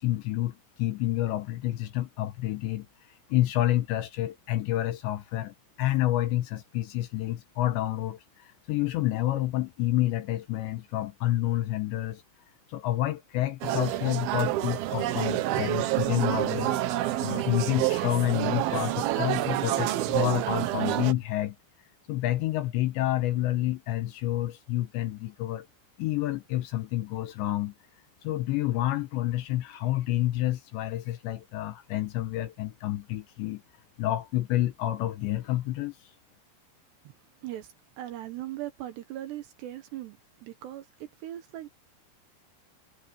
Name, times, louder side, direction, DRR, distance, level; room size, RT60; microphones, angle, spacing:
voice 1, 0.0-2.9 3.3-12.2 12.7-16.8 17.2-21.6 22.1-25.7 26.0-27.7 28.2-33.6 34.0-36.0, left 15 dB, 75° left, 2.9 m, -29 dB
sound 1, 13.6-21.1, right 14 dB, 90° right, 2.1 m, -28 dB
voice 2, 37.4-41.7, right 13 dB, 70° right, 2.9 m, -39 dB
omnidirectional pair, 5.9 m